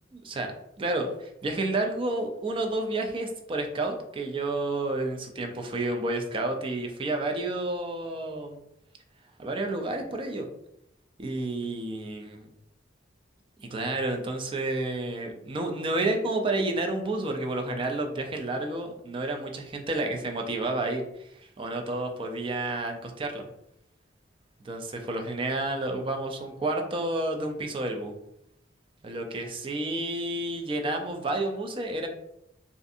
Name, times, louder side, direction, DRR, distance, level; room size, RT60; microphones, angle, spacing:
voice 1, 0.1-0.5 0.8-8.6 9.4-10.5 11.2-12.5 13.6-21.3 21.6-23.4 24.6-28.1 29.0-32.1, right 2 dB, 30° right, 4 dB, 0.3 m, -30 dB
2.5 x 2.4 x 2.6 m, 0.80 s
head